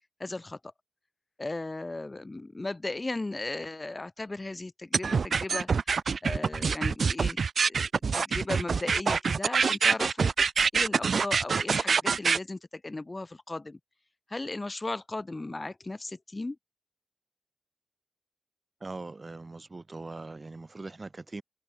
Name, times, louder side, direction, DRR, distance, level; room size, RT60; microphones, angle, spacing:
voice 1, 0.2-0.7 1.4-5.7 6.2-7.9 8.1-10.3 10.7-13.8 14.3-16.6, left 2 dB, 30° left, 2.1 m, -36 dB
sound 1, 4.9-12.4, right 5 dB, 75° right, 0.6 m, -25 dB
voice 2, 18.8-21.4, right 3 dB, 35° right, 1.8 m, -41 dB
wide cardioid pair, 85°, 0 cm